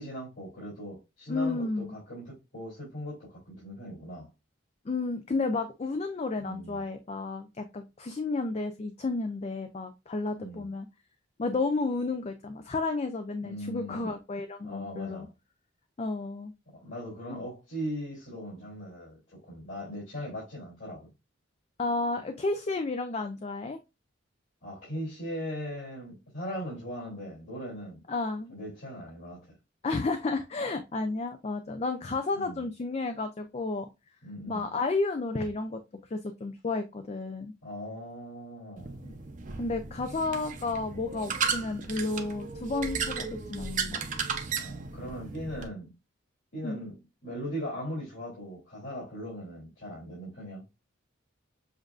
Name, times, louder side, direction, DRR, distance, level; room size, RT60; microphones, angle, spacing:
voice 1, 0.0-4.3 6.4-6.8 10.3-10.7 13.4-14.1 14.6-15.3 16.7-21.1 24.6-28.0 28.5-29.5 32.3-32.6 34.2-34.7 37.6-39.0 44.5-45.9 46.5-50.6, equal, 75° left, 2.9 m, -39 dB
voice 2, 1.3-1.9 4.9-10.9 11.4-15.3 16.0-16.5 21.8-23.8 28.1-28.5 29.8-33.9 34.5-35.8 36.1-37.5 39.0-39.1 39.6-44.0 46.6-46.8, left 3 dB, 35° left, 0.4 m, -32 dB
sound 1, 38.8-45.7, right 5 dB, 40° right, 0.7 m, -35 dB
7.2 x 2.5 x 2.4 m
head